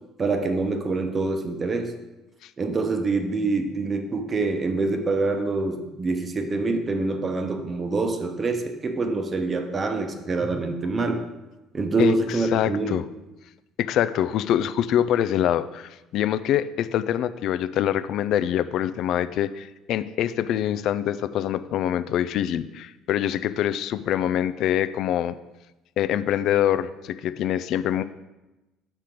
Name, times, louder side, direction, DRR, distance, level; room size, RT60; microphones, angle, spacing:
voice 1, 0.2-1.9 2.6-11.2 11.7-13.0, right 3 dB, 30° right, 6 dB, 0.8 m, -25 dB
voice 2, 12.5-13.0 13.8-25.4 26.0-28.0, left 11 dB, 55° left, 14 dB, 0.3 m, -24 dB
6.2 x 4.3 x 4.9 m, 1.0 s
figure-of-eight pair, 55°, 0 cm